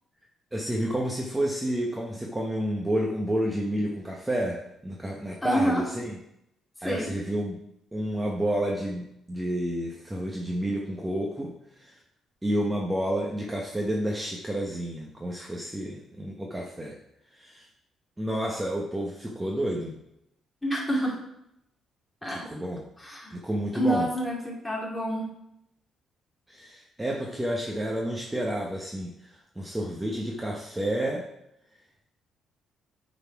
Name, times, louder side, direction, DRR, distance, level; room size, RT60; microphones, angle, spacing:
voice 1, 0.5-6.2 6.8-7.6 7.9-12.0 12.4-17.0 17.3-17.7 18.2-19.9 22.3-22.8 23.3-24.1 26.5-31.3, right 1 dB, 10° right, -1 dB, 1.0 m, -30 dB
voice 2, 5.4-5.9 6.8-7.1 20.6-21.2 22.2-22.5 23.0-23.4 23.7-25.3, equal, 10° left, -3 dB, 2.5 m, -27 dB
8.7 x 4.1 x 4.7 m, 0.81 s
cardioid pair, 90°, 0 cm